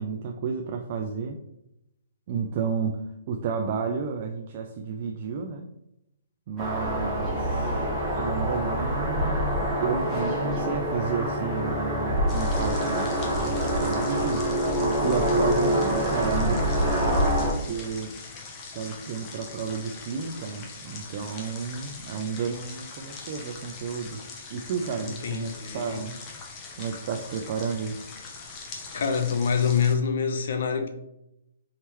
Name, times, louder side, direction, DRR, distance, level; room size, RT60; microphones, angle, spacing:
voice 1, 0.0-1.4 2.3-5.7 6.5-7.8 8.1-14.5 15.0-18.1 18.7-24.2 24.5-26.1 26.8-28.0, right 5 dB, 40° right, 0.3 m, -32 dB
sound 1, 6.6-17.5, equal, 5° right, 1.3 m, -26 dB
sound 2, 12.3-30.0, left 4 dB, 25° left, 0.7 m, -42 dB
voice 2, 25.2-26.0 28.9-30.9, left 6 dB, 60° left, 0.7 m, -25 dB
4.3 x 3.6 x 3.0 m
hypercardioid pair, 165°, 0 cm